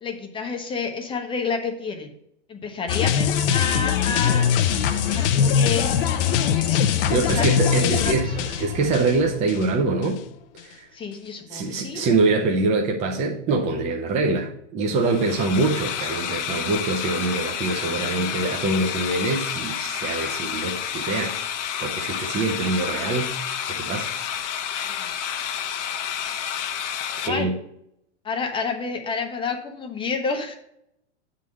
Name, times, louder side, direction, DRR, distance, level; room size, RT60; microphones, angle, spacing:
voice 1, 0.0-2.1 2.5-4.5 5.1-5.9 6.5-6.8 7.1-8.5 10.9-12.1 16.6-16.7 17.6-18.3 22.1-22.2 24.9-25.1 27.2-27.5 28.2-30.5, left 5 dB, 15° left, 4 dB, 0.8 m, -30 dB
sound 1, 2.9-9.7 10.0-10.2, left 8 dB, 50° left, 0.6 m, -22 dB
sound 2, 3.3-9.3, right 4 dB, 75° right, 1.6 m, -39 dB
voice 2, 7.1-8.3 8.6-10.2 10.6-10.9 11.5-21.3 21.8-23.4 23.7-24.1 27.1-27.5, right 3 dB, 20° right, 0 dB, 0.6 m, -24 dB
sound 3, 14.9-27.3, left 9 dB, 70° left, 0.9 m, -30 dB
7.3 x 3.8 x 6.3 m, 0.76 s
hypercardioid pair, 145°, 37 cm